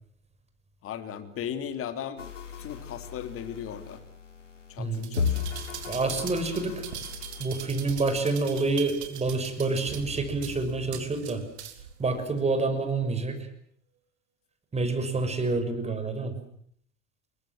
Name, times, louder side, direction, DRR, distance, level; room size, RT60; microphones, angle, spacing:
voice 1, 0.8-2.3 2.6-4.0 4.7-5.5, left 9 dB, 35° left, 9 dB, 3.2 m, -37 dB
sound 1, 2.2-7.4, left 6 dB, 80° left, 3.8 m, -35 dB
voice 2, 4.8-5.1 5.9-6.7 7.4-11.4 12.0-13.4 14.7-16.3, right 3 dB, 20° right, 8 dB, 6.2 m, -28 dB
sound 2, 4.9-11.9 12.4-12.5, right 9 dB, 65° right, 3.6 m, -41 dB
sound 3, 9.9-12.1 12.4-12.5, right 9 dB, 45° right, 7.2 m, -44 dB
28.5 x 23.0 x 7.7 m, 0.64 s
figure-of-eight pair, 75°, 36 cm